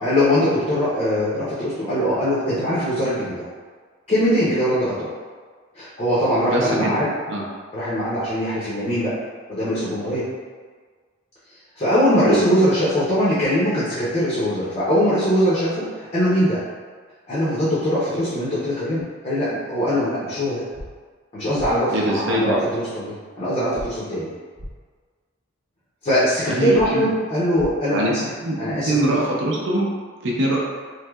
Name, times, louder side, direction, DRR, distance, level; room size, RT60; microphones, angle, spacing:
voice 1, 0.0-3.4 4.1-5.1 5.8-7.1 7.7-9.1 9.5-10.3 11.8-16.6 17.3-20.6 21.3-24.3 26.0-28.3 28.6-29.2, equal, 30° left, -10 dB, 0.6 m, -21 dB
voice 2, 6.5-6.9 7.3-7.5 12.3-12.4 21.9-22.6 26.5-27.1 27.9-28.1 28.4-29.9 30.2-30.6, right 1 dB, 55° right, -3 dB, 0.5 m, -23 dB
sound 1, 20.7-20.9 21.6-21.7 23.7-23.9 24.6-24.7 26.7-26.9 27.5-27.7, equal, 25° right, 0.8 m, -34 dB
3.1 x 2.7 x 2.3 m, 1.6 s
head